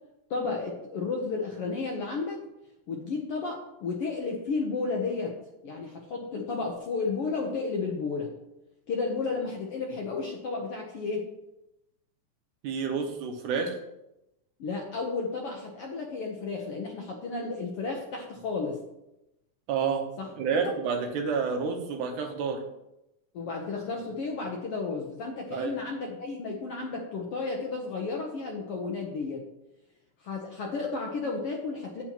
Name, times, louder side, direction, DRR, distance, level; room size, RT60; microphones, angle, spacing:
voice 1, 0.3-2.4 2.9-5.4 5.6-8.3 8.9-11.2 14.6-18.8 20.2-20.3 20.5-20.7 23.3-29.4 30.2-32.0, left 4 dB, 65° left, 0 dB, 1.5 m, -32 dB
voice 2, 12.6-13.8 19.7-20.0 20.4-22.6 25.5-25.8, right 5 dB, 80° right, 4 dB, 2.4 m, -29 dB
8.6 x 8.5 x 3.0 m, 0.89 s
omnidirectional pair, 3.6 m